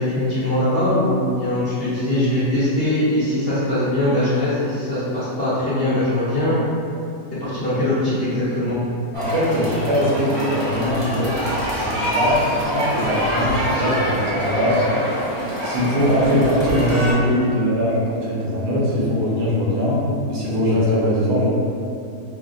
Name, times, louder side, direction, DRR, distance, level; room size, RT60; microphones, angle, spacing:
voice 1, 0.0-6.6 7.4-8.8, left 1 dB, 45° left, -12 dB, 0.8 m, -21 dB
sound 1, 9.1-17.1, equal, 30° right, 0.7 m, -25 dB
voice 2, 9.2-11.3 11.7-12.4 12.6-14.8 15.6-20.0 20.3-21.5, equal, 80° right, -7 dB, 1.6 m, -21 dB
5.5 x 2.1 x 2.4 m, 2.6 s
omnidirectional pair, 1.8 m